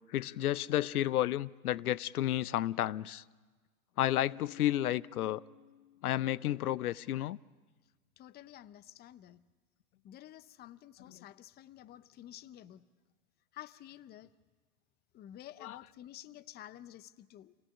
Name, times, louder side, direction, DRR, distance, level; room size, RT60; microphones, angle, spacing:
voice 1, 0.1-3.2 4.0-5.4 6.0-7.4 15.6-15.8, left 13 dB, 80° left, 0.7 m, -31 dB
Keyboard (musical), 4.0-6.7, left 13 dB, 50° left, 1.0 m, -54 dB
voice 2, 8.2-9.4 10.0-12.9 13.5-14.3 15.1-17.5, left 12 dB, 20° left, 0.7 m, -51 dB
27.0 x 17.5 x 9.9 m
hypercardioid pair, 110°, 44 cm